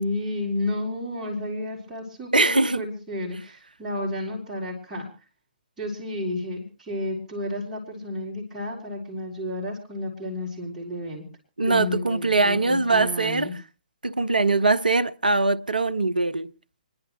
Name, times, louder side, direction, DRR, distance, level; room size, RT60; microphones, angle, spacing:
voice 1, 0.0-5.1 5.8-11.2 11.6-13.5, left 1 dB, 10° right, 3.5 m, -31 dB
voice 2, 2.3-2.8 11.6-13.5 14.0-16.5, right 3 dB, 70° right, 0.8 m, -22 dB
29.5 x 10.5 x 3.0 m
figure-of-eight pair, 130°, 5 cm